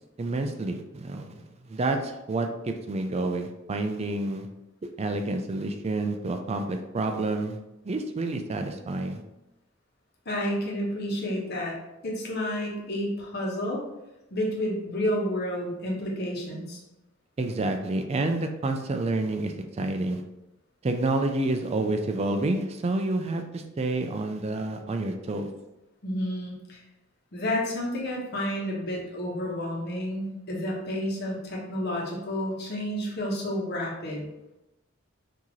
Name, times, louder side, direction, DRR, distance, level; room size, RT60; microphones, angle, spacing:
voice 1, 0.2-1.4 1.7-4.5 4.8-7.6 7.8-9.2 17.4-20.2 20.8-25.5, right 2 dB, 30° right, 6 dB, 0.4 m, -29 dB
voice 2, 10.2-11.7 12.0-13.8 14.3-16.8 26.0-26.8 27.3-34.3, left 1 dB, 55° left, -2 dB, 1.2 m, -30 dB
6.0 x 2.8 x 3.0 m, 0.95 s
head